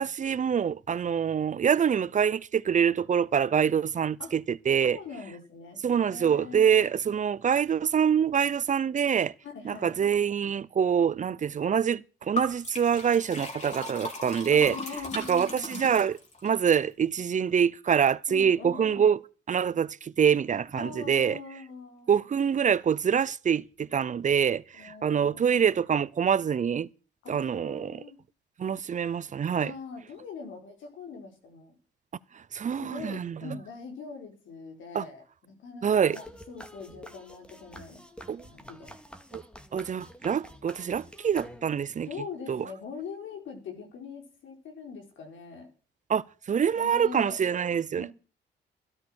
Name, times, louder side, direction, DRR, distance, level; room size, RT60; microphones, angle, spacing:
voice 1, 0.0-5.0 5.8-9.3 9.6-14.8 15.1-19.2 19.5-21.4 22.1-26.9 27.3-28.0 28.6-29.7 32.3-33.6 34.9-35.0 35.8-36.2 38.3-38.4 39.3-39.4 39.7-42.1 42.5-42.6 46.1-48.1, right 7 dB, 40° right, 0.7 m, -25 dB
voice 2, 4.8-6.7 9.4-10.0 14.5-15.7 18.3-19.1 20.7-22.2 24.7-25.7 27.2-28.2 29.6-31.8 32.7-38.0 38.5-39.0 42.1-45.7 46.7-47.4 48.0-48.1, left 5 dB, 75° left, 4.5 m, -42 dB
Liquid, 12.4-16.6, left 1 dB, 35° left, 4.4 m, -37 dB
sound 1, 36.1-41.9, equal, 5° left, 2.3 m, -48 dB
13.0 x 12.5 x 6.4 m
cardioid pair, 90°, 20 cm